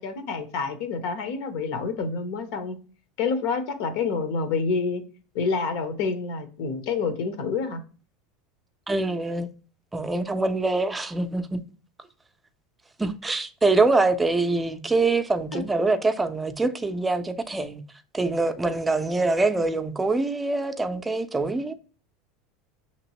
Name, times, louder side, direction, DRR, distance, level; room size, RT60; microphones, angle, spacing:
voice 1, 0.0-2.8 3.2-5.0 5.3-7.8 15.5-15.6, left 4 dB, 70° left, 0.8 m, -28 dB
voice 2, 8.9-9.5 9.9-11.6 13.0-17.8 18.1-21.8, right 3 dB, 15° right, 0.5 m, -24 dB
6.1 x 2.9 x 2.9 m
supercardioid pair, 110°, 0 cm